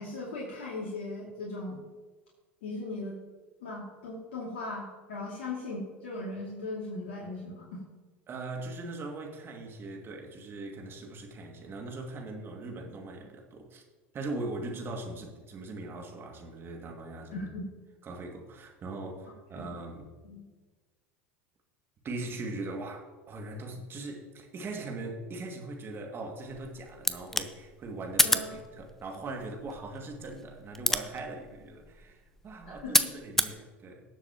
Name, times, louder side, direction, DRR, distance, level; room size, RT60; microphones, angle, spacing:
voice 1, 0.0-1.8 2.6-3.2 3.6-7.9 17.3-17.7 19.5-19.7 20.3-20.5 28.2-28.5 32.6-33.1, left 2 dB, 70° left, -5 dB, 2.6 m, -38 dB
voice 2, 8.3-13.8 14.1-17.5 18.0-20.1 22.0-34.0, right 2 dB, 35° right, 2 dB, 2.2 m, -40 dB
sound 1, 26.5-33.6, left 1 dB, 5° left, 0.7 m, -31 dB
19.0 x 7.1 x 3.0 m, 1.3 s
hypercardioid pair, 80°, 7 cm